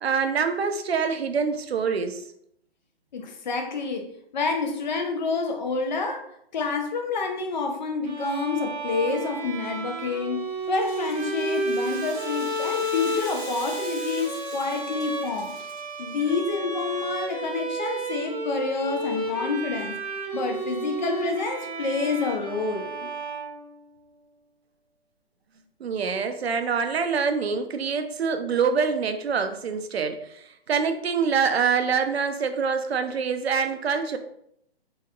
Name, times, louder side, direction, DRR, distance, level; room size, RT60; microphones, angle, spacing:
voice 1, 0.0-2.2 25.8-34.2, right 6 dB, 75° right, 7 dB, 0.5 m, -25 dB
voice 2, 3.1-15.5 16.0-20.0 20.3-23.1, left 4 dB, 45° left, 5 dB, 0.5 m, -28 dB
Bowed string instrument, 8.0-24.1, right 1 dB, 35° right, 0.7 m, -32 dB
Rattle (instrument), 10.6-16.1, equal, ahead, 0.7 m, -43 dB
2.9 x 2.8 x 2.3 m, 0.73 s
figure-of-eight pair, 130°, 32 cm